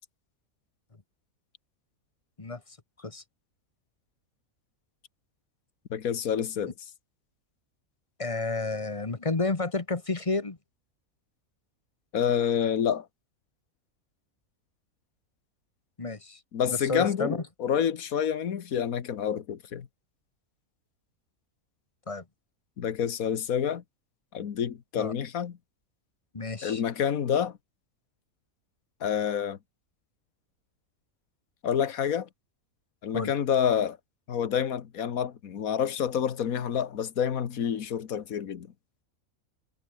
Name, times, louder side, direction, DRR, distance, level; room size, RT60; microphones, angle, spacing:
voice 1, 5.9-6.7 12.1-13.1 16.5-19.9 22.8-23.8 24.3-25.6 26.6-27.6 29.0-29.6 31.6-32.3 33.0-34.0 34.3-38.7, left 8 dB, 80° left, 1.7 m, -28 dB
voice 2, 8.2-10.6 16.0-16.4 16.7-17.4 22.1-22.2 25.0-25.1 26.3-26.8 33.1-33.3, left 3 dB, 25° left, 1.3 m, -30 dB
omnidirectional pair, 1.5 m